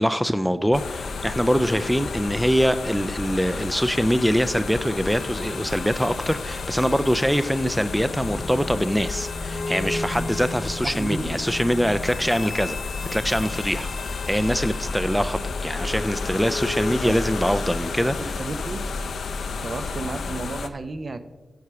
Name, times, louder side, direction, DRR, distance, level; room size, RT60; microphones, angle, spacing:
voice 1, 0.0-18.4, equal, ahead, 12 dB, 0.3 m, -24 dB
sound 1, 0.7-20.7, left 4 dB, 90° left, 0.5 m, -32 dB
sound 2, 5.0-19.7, left 2 dB, 55° left, 0.8 m, -36 dB
voice 2, 10.8-11.4 16.9-17.2 18.2-18.8 19.6-21.2, right 3 dB, 45° right, 10 dB, 0.6 m, -32 dB
7.9 x 6.8 x 5.9 m, 1.2 s
wide cardioid pair, 105°, 0 cm